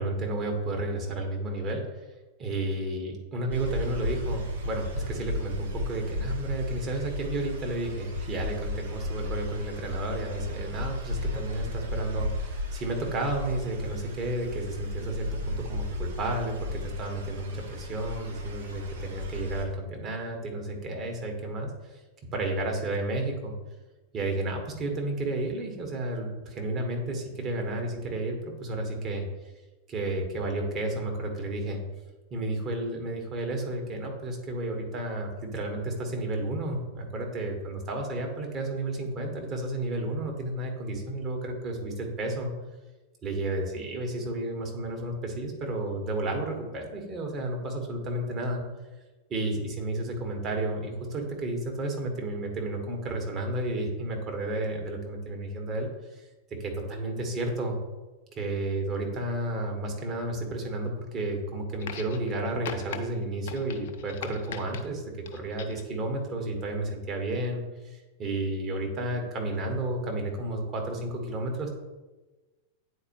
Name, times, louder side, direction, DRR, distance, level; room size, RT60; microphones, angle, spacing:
voice 1, 0.0-1.8 2.4-22.0 22.3-23.5 24.1-29.2 29.9-31.8 32.3-42.5 43.2-48.6 49.3-56.2 56.6-57.8 58.3-65.0 65.3-71.7, right 2 dB, 30° right, 1 dB, 1.4 m, -32 dB
sound 1, 3.5-19.7, left 1 dB, 65° right, 1.0 m, -35 dB
sound 2, 61.8-62.4 62.7-63.0 63.5-64.8 65.3-65.9 66.9-67.0, left 7 dB, 55° left, 0.5 m, -40 dB
8.8 x 4.3 x 3.0 m, 1.2 s
figure-of-eight pair, 90°, 0 cm